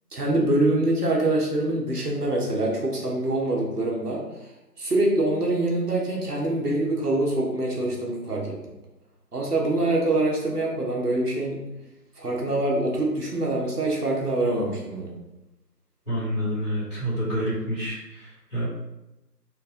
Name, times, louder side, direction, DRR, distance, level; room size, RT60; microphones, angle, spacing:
voice 1, 0.1-4.2 4.8-8.6 9.3-11.6 12.2-15.1, right 2 dB, 65° right, -2 dB, 1.3 m, -24 dB
voice 2, 16.0-18.7, equal, 5° right, -22 dB, 1.5 m, -28 dB
4.5 x 2.6 x 3.7 m, 0.95 s
figure-of-eight pair, 155°, 50 cm